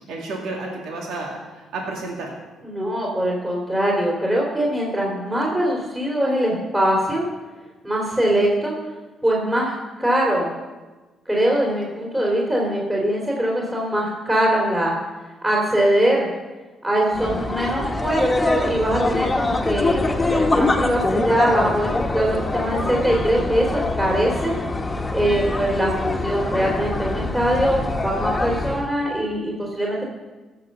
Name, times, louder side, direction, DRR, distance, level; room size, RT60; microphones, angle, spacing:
voice 1, 0.1-2.3, right 2 dB, 85° right, -1 dB, 2.4 m, -31 dB
voice 2, 2.6-7.2 7.8-8.7 9.2-10.5 11.3-15.0 15.4-16.3 16.8-24.5 25.1-30.0, right 1 dB, 15° right, -3 dB, 3.6 m, -22 dB
sound 1, 17.1-28.9, left 2 dB, 15° left, 1.5 m, -24 dB
15.5 x 7.5 x 6.8 m, 1.2 s
cardioid pair, 90°, 0 cm